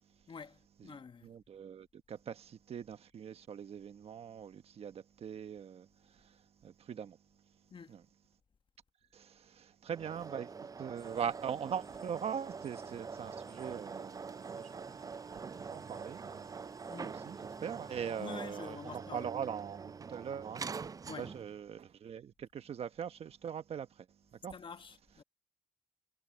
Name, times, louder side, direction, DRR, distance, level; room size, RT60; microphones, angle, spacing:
voice 1, 0.3-1.3 7.7-8.0 16.9-17.2 18.2-19.3 21.1-21.3 24.5-25.2, left 5 dB, 50° left, 1.2 m, -47 dB
voice 2, 1.2-7.2 7.9-8.0 9.1-10.5 10.8-16.8 17.0-20.6 21.1-24.5, right 8 dB, 70° right, 1.3 m, -42 dB
sound 1, 9.9-21.6, right 5 dB, 35° right, 0.4 m, -45 dB
sound 2, 10.9-18.6, equal, 5° left, 2.0 m, -62 dB
supercardioid pair, 55°, 11 cm